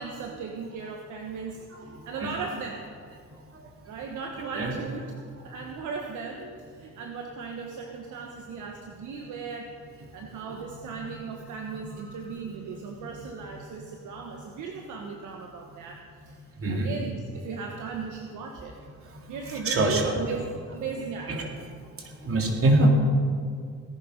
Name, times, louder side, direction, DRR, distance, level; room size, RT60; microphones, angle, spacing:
voice 1, 0.0-1.6 2.0-2.8 3.9-5.1 5.4-6.4 6.7-9.7 10.0-16.3 16.7-18.8 19.3-21.5, right 5 dB, 80° right, 2 dB, 1.4 m, -37 dB
voice 2, 1.9-2.3 4.5-4.7 5.5-5.6 10.4-10.7 11.7-11.8 16.6-16.9 19.5-20.2 21.3-21.7 22.0-22.9, right 1 dB, 45° right, 0 dB, 3.4 m, -25 dB
18.0 x 11.0 x 5.3 m, 2.1 s
cardioid pair, 90°, 30 cm